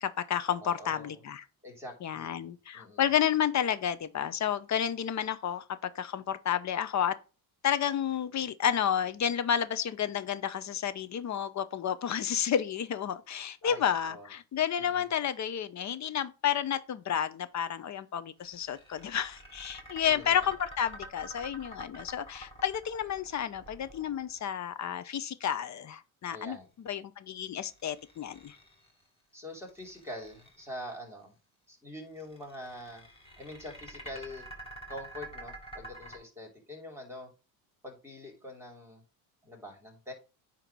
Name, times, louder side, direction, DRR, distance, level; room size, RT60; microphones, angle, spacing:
voice 1, 0.0-1.4 2.0-7.1 7.6-26.6 26.8-28.6, left 9 dB, 40° left, 0.7 m, -31 dB
voice 2, 0.6-1.2 1.6-2.5 2.7-3.1 13.6-14.3 14.8-15.1 20.0-20.5 26.3-26.7 29.3-31.4 31.7-33.0 33.4-34.5 34.9-37.3 37.8-39.0 39.4-40.1, left 1 dB, 5° right, 3.2 m, -44 dB
sound 1, 18.4-24.6 27.4-29.0 29.6-30.9 32.2-36.2, right 1 dB, 10° left, 4.5 m, -47 dB
9.0 x 3.0 x 6.1 m
cardioid pair, 115°, 46 cm